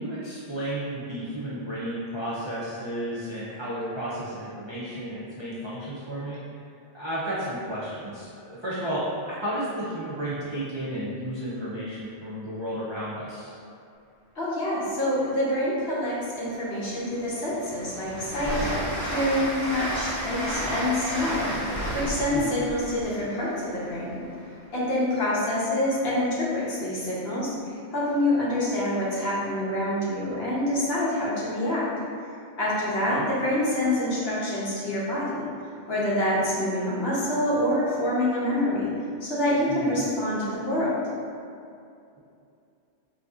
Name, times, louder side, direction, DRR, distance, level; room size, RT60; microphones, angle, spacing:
voice 1, 0.0-6.4 6.9-9.1 9.4-13.6 22.3-22.5 33.1-33.2 39.7-39.9, right 1 dB, 45° right, -10 dB, 0.3 m, -32 dB
voice 2, 14.4-18.6 19.0-21.4 21.9-24.1 24.7-31.9 32.6-35.5 35.9-38.9 39.2-41.0, left 1 dB, 60° left, -7 dB, 1.0 m, -26 dB
Train, 16.3-16.4 16.8-24.5, equal, 35° left, 0.8 m, -32 dB
3.9 x 2.6 x 2.3 m, 2.5 s
omnidirectional pair, 1.2 m